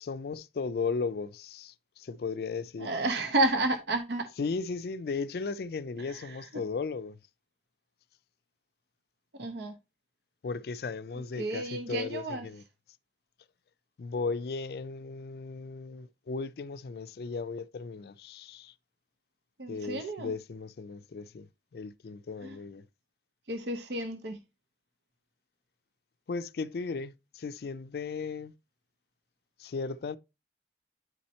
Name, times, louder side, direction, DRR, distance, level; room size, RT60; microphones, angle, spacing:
voice 1, 0.0-2.9 4.4-7.2 10.4-12.6 14.0-18.7 19.7-21.5 21.7-22.9 26.3-28.5 29.6-30.2, left 4 dB, 60° left, 0.4 m, -36 dB
voice 2, 2.8-4.3 6.1-6.4 9.4-9.8 11.4-12.5 19.6-20.3 22.4-22.6 23.5-24.4, right 2 dB, 75° right, 0.7 m, -31 dB
9.3 x 4.3 x 2.8 m
head